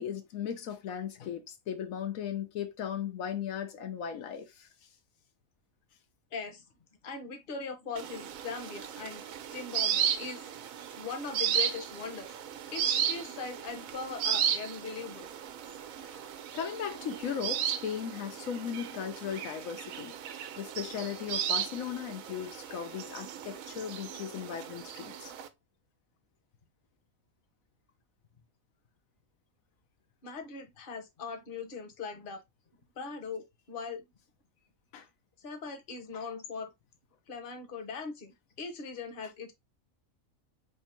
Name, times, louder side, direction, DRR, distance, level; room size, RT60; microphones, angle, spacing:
voice 1, 0.0-4.7 16.0-16.2 16.5-20.1 20.6-25.3 34.9-35.1, left 8 dB, 80° left, 1.1 m, -37 dB
voice 2, 6.3-6.6 7.0-9.2 9.5-10.5 11.0-12.3 12.7-15.3 30.2-32.4 33.0-34.0 35.4-36.7 37.3-39.5, left 5 dB, 45° left, 1.1 m, -40 dB
sound 1, 8.0-25.5, right 9 dB, 80° right, 1.0 m, -35 dB
3.5 x 2.7 x 4.4 m
omnidirectional pair, 1.4 m